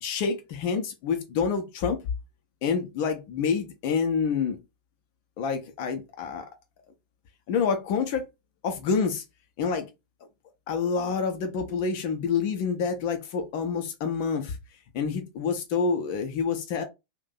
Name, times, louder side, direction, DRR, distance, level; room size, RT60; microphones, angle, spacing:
voice 1, 0.0-2.0 2.6-4.6 5.4-6.5 7.5-8.2 8.6-9.2 9.6-9.9 10.7-14.6 14.9-16.8, left 5 dB, 45° left, 0.6 m, -27 dB
2.6 x 2.2 x 3.9 m
figure-of-eight pair, 90°, 0 cm